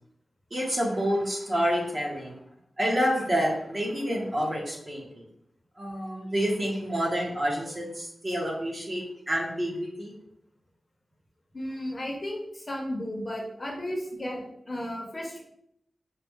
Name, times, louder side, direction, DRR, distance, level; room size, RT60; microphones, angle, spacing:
voice 1, 0.5-2.4 2.8-5.2 5.8-10.2, equal, 30° right, -1 dB, 0.9 m, -28 dB
voice 2, 11.5-15.4, left 1 dB, 25° left, -1 dB, 0.8 m, -34 dB
4.7 x 2.2 x 3.5 m, 0.73 s
wide cardioid pair, 145°, 0 cm